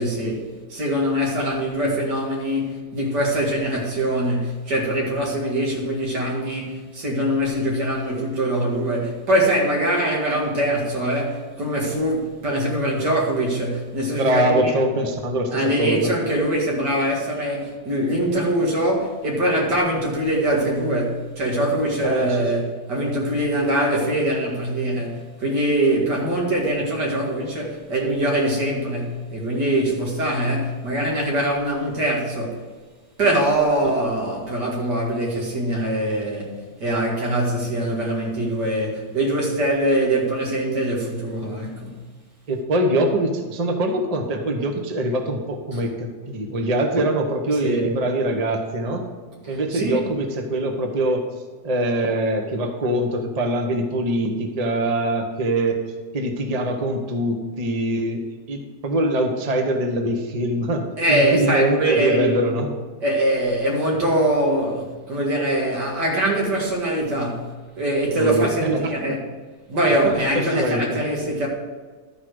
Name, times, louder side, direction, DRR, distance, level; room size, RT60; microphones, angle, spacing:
voice 1, 0.0-14.7 15.5-32.6 33.2-41.9 45.7-45.8 47.6-47.9 49.5-50.0 61.0-62.6 63.0-69.2 69.7-71.5, right 1 dB, 85° right, 2.7 m, -23 dB
voice 2, 14.2-16.1 22.0-22.5 42.5-49.0 49.5-51.2 51.6-55.8 56.1-58.2 58.5-62.7 68.1-68.9 70.0-71.0, right 1 dB, 30° right, 0.9 m, -23 dB
12.5 x 5.0 x 6.3 m
omnidirectional pair, 1.8 m